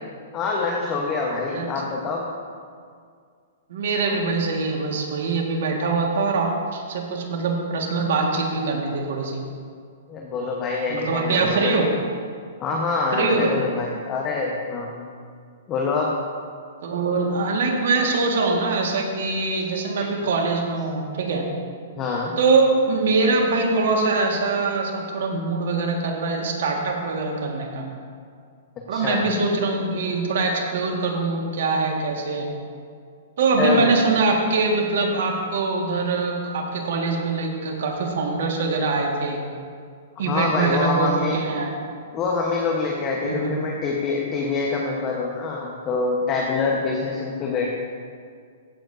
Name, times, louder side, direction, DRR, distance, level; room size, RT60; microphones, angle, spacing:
voice 1, 0.3-2.3 10.1-11.7 12.6-15.1 15.7-16.1 22.0-22.4 28.9-29.3 33.6-33.9 40.2-41.4 42.1-47.7, left 4 dB, 30° left, -1 dB, 1.1 m, -25 dB
voice 2, 1.5-1.8 3.7-9.4 10.9-11.9 13.1-13.6 16.8-21.5 22.4-27.9 28.9-32.5 33.4-39.4 40.2-41.7 43.2-43.6, right 3 dB, 70° right, 1 dB, 1.8 m, -23 dB
15.5 x 7.4 x 2.7 m, 2.1 s
hypercardioid pair, 130°, 0 cm